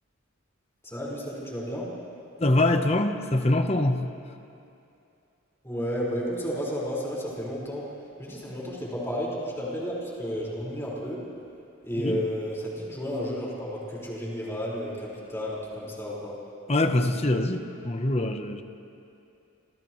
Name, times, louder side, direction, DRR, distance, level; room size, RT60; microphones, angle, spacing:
voice 1, 0.9-1.9 5.6-7.9 8.2-11.2 11.8-16.3, equal, 10° left, -5 dB, 5.0 m, -32 dB
voice 2, 2.4-4.1 12.0-12.2 16.7-18.6, left 1 dB, 30° left, 7 dB, 1.0 m, -24 dB
29.5 x 28.5 x 3.2 m, 2.6 s
head